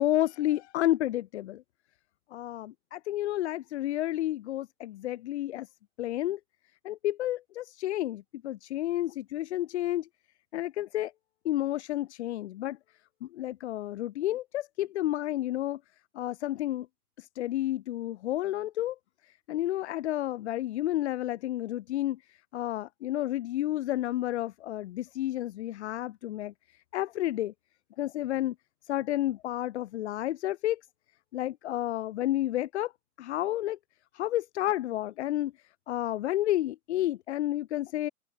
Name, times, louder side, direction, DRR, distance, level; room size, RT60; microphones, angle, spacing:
voice 1, 0.0-1.6 2.3-5.7 6.0-6.4 6.8-10.1 10.5-11.1 11.5-12.8 13.2-15.8 16.2-16.9 17.2-19.0 19.5-22.2 22.5-26.5 26.9-27.5 28.0-28.5 28.9-30.8 31.3-32.9 33.2-33.8 34.1-35.5 35.9-38.1, left 14 dB, 45° left, 2.0 m, -31 dB
open air
figure-of-eight pair, 115°, 46 cm